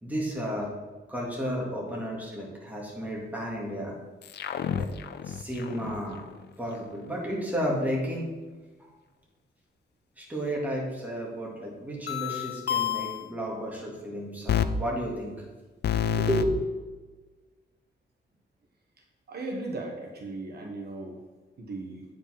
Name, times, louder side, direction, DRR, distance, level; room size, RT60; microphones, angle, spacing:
voice 1, 0.0-0.7 1.1-3.9 4.7-4.9 5.2-6.2 6.6-8.3 10.2-15.3 16.2-16.6, equal, 10° right, -4 dB, 2.0 m, -32 dB
sound 1, 4.2-6.0 12.1-13.2 14.5-14.7 15.8-16.4, left 9 dB, 60° left, 0.5 m, -28 dB
voice 2, 19.3-21.2 21.6-22.0, right 2 dB, 55° right, 1 dB, 1.2 m, -37 dB
8.8 x 5.1 x 5.7 m, 1.3 s
wide cardioid pair, 170°, 20 cm